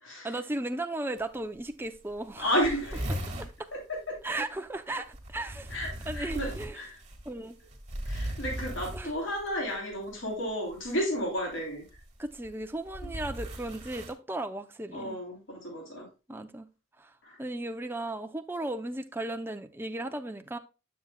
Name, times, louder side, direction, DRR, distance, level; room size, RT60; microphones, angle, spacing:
voice 1, 0.2-2.7 3.4-3.7 4.2-5.8 6.1-6.8 7.3-7.6 8.9-9.1 12.2-15.2 16.3-16.7 17.0-17.1 17.4-20.6, right 1 dB, 10° right, 0.5 m, -36 dB
sound 1, 1.2-1.3 1.6-1.7 1.9-2.0 2.2-3.6 5.1-9.5 10.7-11.0 11.9-14.1, equal, 35° right, 1.9 m, -37 dB
voice 2, 2.4-3.1 3.7-3.8 4.1-4.2 5.7-6.9 8.1-11.8 14.9-16.1 17.2-17.4, equal, 60° left, 3.3 m, -32 dB
9.3 x 7.2 x 2.2 m
head